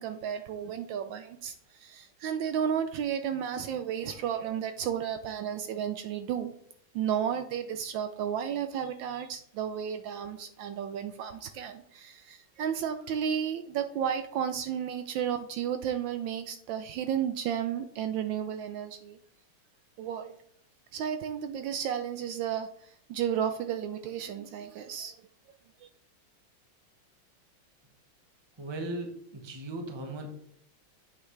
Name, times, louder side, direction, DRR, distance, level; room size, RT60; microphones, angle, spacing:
voice 1, 0.0-6.5 6.9-19.2 20.0-20.4 20.9-25.1, right 8 dB, 75° right, 9 dB, 1.2 m, -33 dB
voice 2, 28.6-30.3, right 1 dB, 20° right, 3 dB, 0.7 m, -37 dB
8.4 x 5.9 x 3.2 m, 0.65 s
omnidirectional pair, 2.3 m